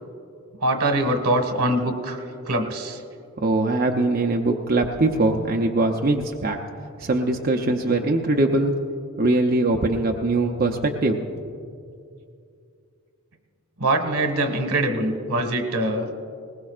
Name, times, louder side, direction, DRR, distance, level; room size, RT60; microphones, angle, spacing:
voice 1, 0.6-3.0 13.8-16.1, right 1 dB, 80° right, 5 dB, 1.5 m, -23 dB
voice 2, 3.4-6.6 7.0-8.7 9.2-11.3, right 2 dB, 40° right, 1 dB, 0.6 m, -22 dB
20.5 x 19.5 x 2.5 m, 2.4 s
head